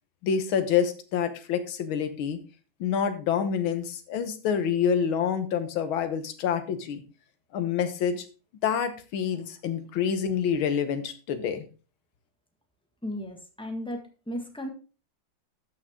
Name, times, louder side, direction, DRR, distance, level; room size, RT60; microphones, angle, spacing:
voice 1, 0.2-2.4 2.8-7.0 7.5-8.3 8.6-11.7, left 7 dB, 75° left, 9 dB, 1.9 m, -27 dB
voice 2, 13.0-14.7, equal, 5° left, 3 dB, 1.4 m, -35 dB
12.5 x 6.2 x 3.6 m, 0.35 s
omnidirectional pair, 2.2 m